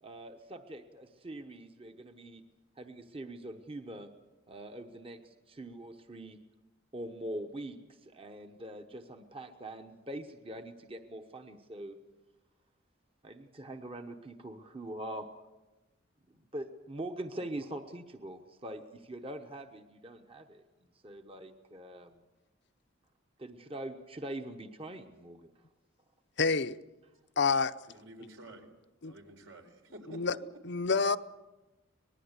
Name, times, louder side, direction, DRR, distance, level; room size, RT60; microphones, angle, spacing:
voice 1, 0.0-2.4 2.8-4.1 4.5-6.4 6.9-12.0 13.2-15.3 16.3-20.6 21.0-22.2 23.4-25.5, right 1 dB, 30° right, 1.1 m, -43 dB
voice 2, 26.4-26.8 27.4-27.7 29.0-29.1 30.1-30.4 30.6-31.2, left 4 dB, 60° left, 0.7 m, -28 dB
voice 3, 27.9-28.7 29.0-30.4, right 1 dB, 75° right, 4.3 m, -50 dB
25.5 x 20.0 x 8.2 m
head